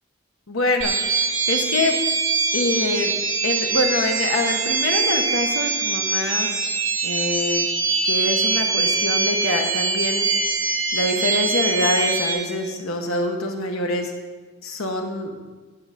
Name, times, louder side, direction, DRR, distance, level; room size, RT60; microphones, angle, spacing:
voice 1, 0.5-1.9 2.5-3.1 3.4-6.5 7.0-7.7 8.0-10.3 10.9-14.1 14.6-15.3, left 2 dB, 85° left, 3 dB, 1.2 m, -25 dB
sound 1, 0.8-12.3, right 4 dB, 85° right, 2.0 m, -23 dB
10.5 x 4.0 x 7.4 m, 1.4 s
head